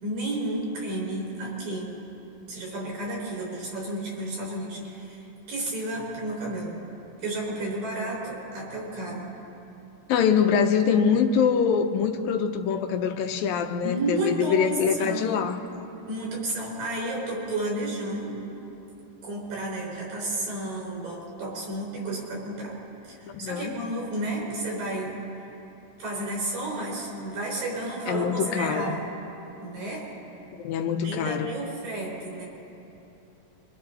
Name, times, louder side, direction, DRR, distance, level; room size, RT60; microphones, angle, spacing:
voice 1, 0.0-1.9 2.5-6.8 7.2-9.3 13.8-15.5 16.1-18.3 19.2-22.8 23.0-25.5 26.0-29.2 29.6-30.0 30.9-32.4, right 1 dB, 75° right, -4 dB, 7.2 m, -32 dB
voice 2, 10.1-15.6 23.3-23.8 28.1-28.9 30.6-31.5, left 7 dB, 80° left, 6 dB, 2.7 m, -24 dB
28.0 x 24.5 x 4.2 m, 2.9 s
omnidirectional pair, 4.1 m